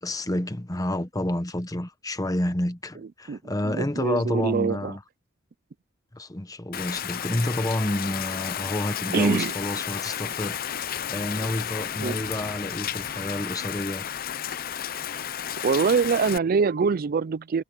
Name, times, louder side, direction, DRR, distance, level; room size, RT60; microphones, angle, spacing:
voice 1, 0.0-5.0 6.1-14.1, left 1 dB, 20° left, 1.1 m, -29 dB
voice 2, 3.3-4.9 9.1-9.5 12.0-12.2 15.6-17.6, right 5 dB, 50° right, 0.4 m, -24 dB
Rain, 6.7-16.4, left 9 dB, 50° left, 0.6 m, -32 dB
head